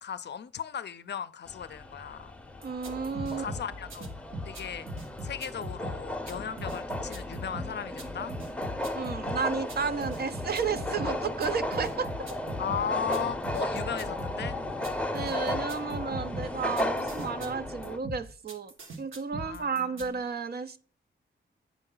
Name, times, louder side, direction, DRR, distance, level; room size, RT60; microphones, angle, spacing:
voice 1, 0.0-2.3 3.4-4.1 4.4-4.9 5.2-8.3 12.6-14.6 19.4-20.1, left 8 dB, 60° left, 0.5 m, -36 dB
sound 1, 1.5-18.0, left 1 dB, 5° left, 0.7 m, -35 dB
voice 2, 2.6-3.5 8.9-12.1 15.1-18.7 19.0-20.8, right 5 dB, 50° right, 0.7 m, -32 dB
sound 2, 2.6-20.1, equal, 80° right, 1.6 m, -40 dB
8.2 x 5.4 x 3.9 m
wide cardioid pair, 135°, 20 cm